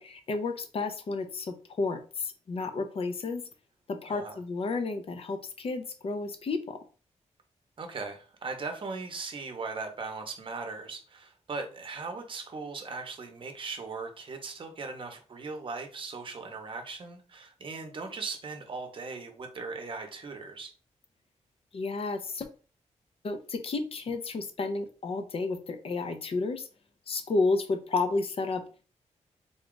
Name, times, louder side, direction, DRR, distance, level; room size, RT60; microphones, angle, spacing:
voice 1, 0.0-3.4 3.9-6.8 21.7-22.5 23.2-26.7 27.1-28.6, left 3 dB, 50° left, 7 dB, 0.6 m, -31 dB
voice 2, 7.8-20.7, right 4 dB, 45° right, 5 dB, 0.8 m, -39 dB
3.8 x 2.3 x 3.7 m, 0.36 s
wide cardioid pair, 150°, 12 cm